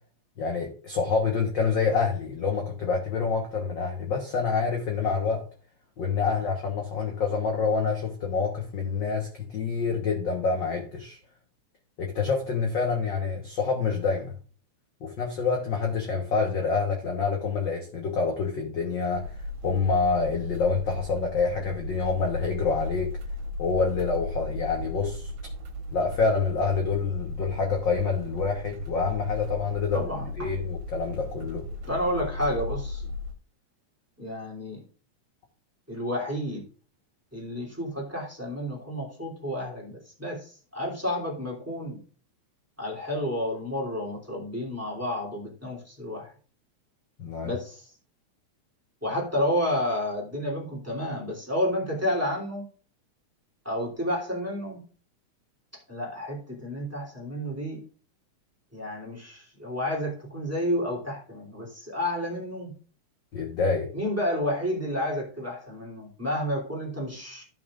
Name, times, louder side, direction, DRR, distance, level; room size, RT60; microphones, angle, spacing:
voice 1, 0.4-5.4 6.0-11.2 12.0-14.3 15.0-19.3 19.6-23.1 23.6-25.3 25.9-30.1 30.4-31.6 47.2-47.5 63.3-63.9, left 5 dB, 50° left, 1.5 m, -27 dB
sound 1, 19.1-33.3, left 2 dB, 75° right, 3.0 m, -36 dB
voice 2, 29.9-30.5 31.8-33.1 34.2-34.8 35.9-36.6 37.3-42.0 42.8-46.3 47.4-47.9 49.0-52.6 53.6-54.8 55.7-57.8 58.7-62.7 63.9-67.4, left 1 dB, 5° right, 2.6 m, -30 dB
15.0 x 5.8 x 2.5 m
omnidirectional pair, 3.5 m